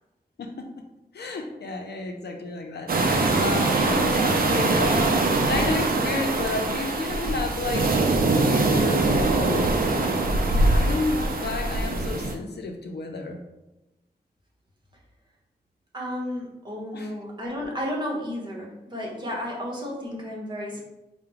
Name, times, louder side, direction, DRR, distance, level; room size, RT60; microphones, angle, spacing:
voice 1, 0.4-0.8 1.1-9.8 10.4-13.4 16.9-17.1, left 3 dB, 80° left, 3 dB, 0.6 m, -32 dB
sound 1, 2.9-12.3, right 2 dB, 60° right, 0.5 m, -23 dB
voice 2, 15.9-20.8, equal, 25° right, -2 dB, 1.1 m, -32 dB
4.8 x 2.1 x 3.4 m, 0.99 s
wide cardioid pair, 75°, 17 cm